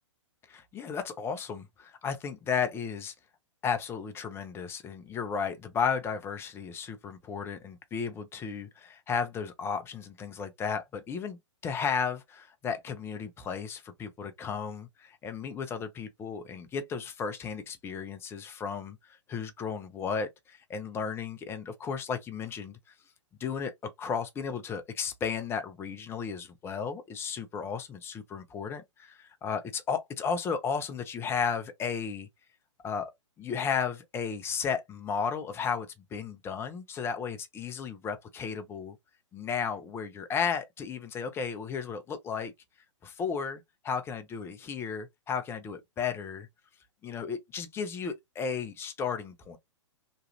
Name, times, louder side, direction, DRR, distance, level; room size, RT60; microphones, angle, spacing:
voice 1, 0.5-3.1 3.6-19.0 19.3-22.8 23.4-32.3 32.8-33.1 33.4-39.0 39.3-42.5 43.0-46.5 47.0-49.6, left 6 dB, 15° left, 0.5 m, -34 dB
3.0 x 2.3 x 2.8 m
figure-of-eight pair, 115°, 16 cm